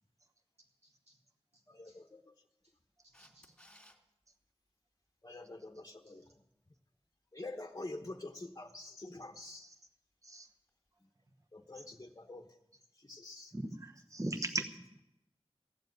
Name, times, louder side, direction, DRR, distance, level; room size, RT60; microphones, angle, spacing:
voice 1, 0.6-1.2 1.5-2.0 2.6-2.8 3.0-3.6 6.1-6.3 9.3-9.5, right 1 dB, 85° right, -1 dB, 2.7 m, -67 dB
voice 2, 1.7-2.3 5.2-6.3 7.3-9.7 11.0-11.1 11.5-12.5 13.0-13.5, left 2 dB, 35° left, 4 dB, 1.0 m, -47 dB
Camera, 3.1-4.0 10.7-10.8, equal, 10° left, 2.4 m, -59 dB
voice 3, 13.5-14.9, right 1 dB, 30° right, 5 dB, 1.1 m, -39 dB
15.5 x 7.4 x 9.3 m, 0.89 s
wide cardioid pair, 55°, 11 cm